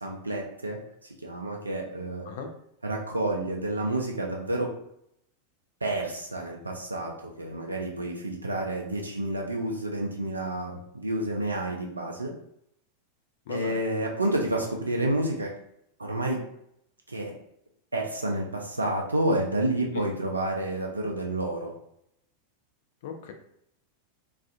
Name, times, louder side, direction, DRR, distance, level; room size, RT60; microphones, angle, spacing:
voice 1, 0.0-2.3 2.8-4.7 5.8-12.3 13.5-15.5 16.0-16.4 17.1-17.3 17.9-21.7, right 1 dB, 80° right, 0 dB, 0.3 m, -29 dB
voice 2, 13.5-13.8 19.9-20.0 23.0-23.3, left 6 dB, 55° left, 4 dB, 0.4 m, -37 dB
2.4 x 2.3 x 2.4 m, 0.75 s
figure-of-eight pair, 90°, 0 cm